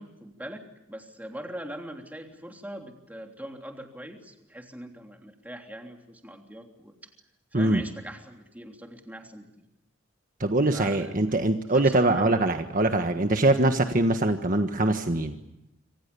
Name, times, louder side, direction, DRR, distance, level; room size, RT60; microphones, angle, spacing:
voice 1, 0.0-6.9 7.5-9.7 10.7-11.3 11.7-12.4, right 1 dB, 10° right, 3 dB, 3.3 m, -41 dB
voice 2, 10.4-15.3, right 2 dB, 40° right, 6 dB, 1.5 m, -23 dB
27.0 x 26.5 x 7.0 m, 0.91 s
head